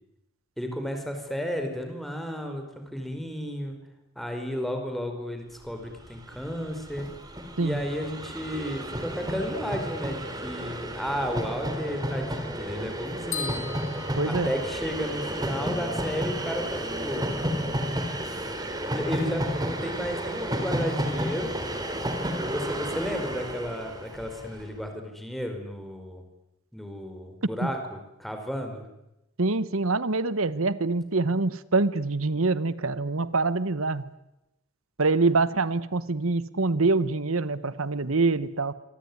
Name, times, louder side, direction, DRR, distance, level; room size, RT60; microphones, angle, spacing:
voice 1, 0.6-3.8 4.1-7.1 7.6-13.7 14.3-17.2 18.9-21.6 22.5-26.2 26.7-28.8, equal, ahead, 4 dB, 4.8 m, -33 dB
Train, 6.0-6.1 6.2-24.6, equal, 20° right, 3.9 m, -32 dB
sound 1, 13.3-15.2, left 6 dB, 70° left, 6.5 m, -37 dB
voice 2, 14.2-14.5 27.6-27.7 29.4-34.0 35.0-38.7, right 3 dB, 75° right, 16 dB, 1.2 m, -25 dB
26.0 x 23.5 x 9.7 m, 0.91 s
head